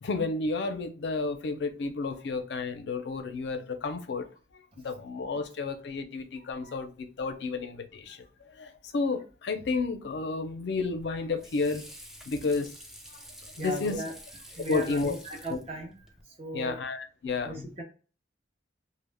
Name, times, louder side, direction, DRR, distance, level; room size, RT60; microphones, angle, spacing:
voice 1, 0.0-4.3 4.5-11.9 12.3-12.7 13.6-14.0 14.7-15.2 15.5-15.6 16.5-17.7, left 4 dB, 70° left, 0.4 m, -31 dB
Water / Sink (filling or washing), 10.7-16.2, equal, ahead, 0.3 m, -49 dB
voice 2, 13.6-14.1 14.5-16.0 16.4-16.8 17.4-17.8, right 1 dB, 35° right, 0.7 m, -36 dB
2.1 x 2.0 x 3.2 m
head